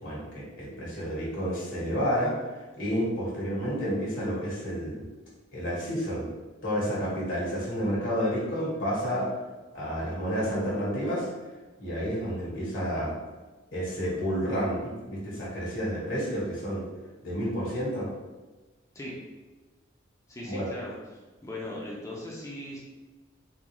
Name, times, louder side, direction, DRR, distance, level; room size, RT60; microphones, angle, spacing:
voice 1, 0.0-5.0 5.5-6.2 6.6-9.3 9.7-11.3 11.8-13.1 13.7-16.9 17.2-18.1 20.4-20.7, equal, 70° left, -6 dB, 1.3 m, -30 dB
voice 2, 20.3-21.0 21.4-22.8, left 1 dB, 15° left, -4 dB, 0.6 m, -38 dB
3.7 x 2.4 x 3.0 m, 1.2 s
head